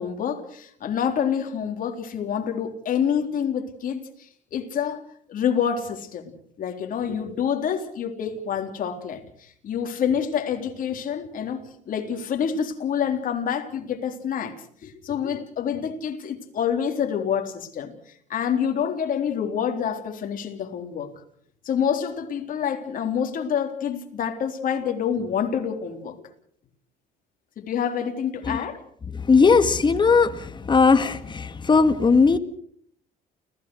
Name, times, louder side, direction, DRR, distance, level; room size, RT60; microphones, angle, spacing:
voice 1, 0.0-5.0 5.3-6.2 6.6-14.6 14.8-17.9 18.3-21.1 21.6-26.2 27.6-28.8, left 8 dB, 55° left, 3.9 m, -27 dB
voice 2, 29.1-32.4, left 4 dB, 25° left, 1.9 m, -18 dB
29.5 x 16.5 x 6.4 m
cardioid pair, 110°, 17 cm